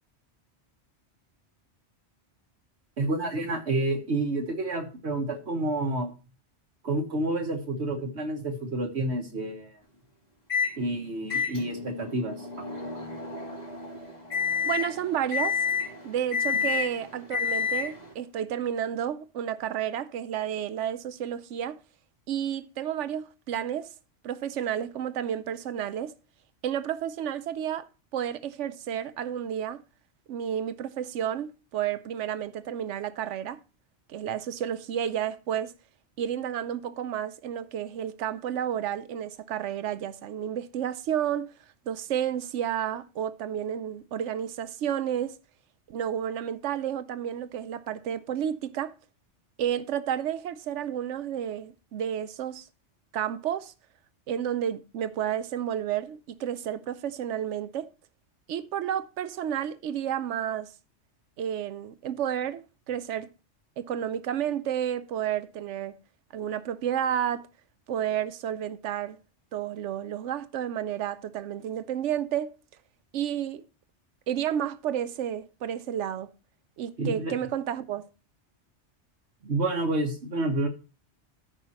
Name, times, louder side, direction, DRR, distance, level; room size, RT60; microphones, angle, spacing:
voice 1, 3.0-6.1 6.8-9.8 10.8-12.7 77.0-77.3 79.4-80.7, right 2 dB, 70° right, 1.6 m, -29 dB
Microwave oven, 10.5-10.8 11.3-18.1, left 6 dB, 35° left, 3.2 m, -30 dB
voice 2, 14.6-15.6 16.0-21.8 22.3-23.9 24.2-26.1 26.6-27.9 28.1-29.8 30.3-33.6 34.1-35.7 36.2-41.5 41.9-45.3 45.9-48.9 49.6-52.7 53.1-53.7 54.3-57.9 58.5-60.7 61.4-63.3 63.8-65.9 66.3-67.5 67.9-69.2 69.5-72.5 73.1-73.6 74.3-76.3 76.8-78.0, right 9 dB, 90° right, 1.0 m, -31 dB
14.0 x 5.7 x 2.9 m
omnidirectional pair, 1.2 m